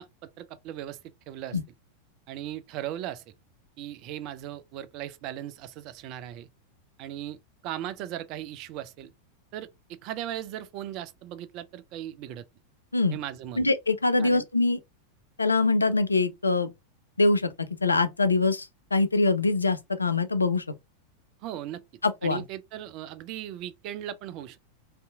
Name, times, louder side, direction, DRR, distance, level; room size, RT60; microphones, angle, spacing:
voice 1, 0.0-1.6 2.3-3.2 3.8-6.5 7.0-7.4 7.6-9.1 9.5-12.4 13.1-13.6 14.2-14.5 21.4-21.8 22.2-24.6, right 12 dB, 40° right, 0.3 m, -38 dB
voice 2, 13.6-14.8 15.4-16.7 17.2-17.5 17.8-20.6 22.0-22.4, left 3 dB, 80° left, 0.3 m, -24 dB
2.6 x 2.5 x 2.2 m
figure-of-eight pair, 90°, 0 cm